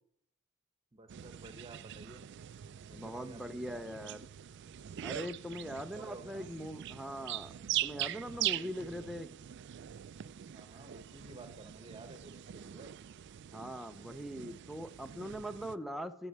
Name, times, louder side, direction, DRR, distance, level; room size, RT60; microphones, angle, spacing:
voice 1, 0.9-2.3 2.9-3.7 5.4-6.5 8.3-9.1 10.5-12.9, right 2 dB, 25° right, 9 dB, 1.1 m, -53 dB
sound 1, 1.1-15.8, right 12 dB, 55° right, 0.3 m, -42 dB
voice 2, 2.9-4.3 5.0-7.5 7.8-9.3 13.5-16.3, equal, ahead, 7 dB, 0.5 m, -41 dB
11.0 x 6.3 x 7.9 m, 0.72 s
head